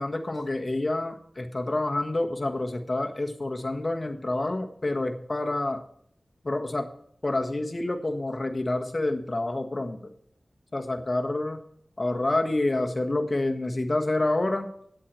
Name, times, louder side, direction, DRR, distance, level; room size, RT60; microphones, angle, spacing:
voice 1, 0.0-5.8 6.4-6.9 7.2-10.0 10.7-11.6 12.0-14.7, left 2 dB, 40° left, 4 dB, 1.4 m, -28 dB
8.9 x 8.4 x 6.1 m, 0.65 s
wide cardioid pair, 80°, 0 cm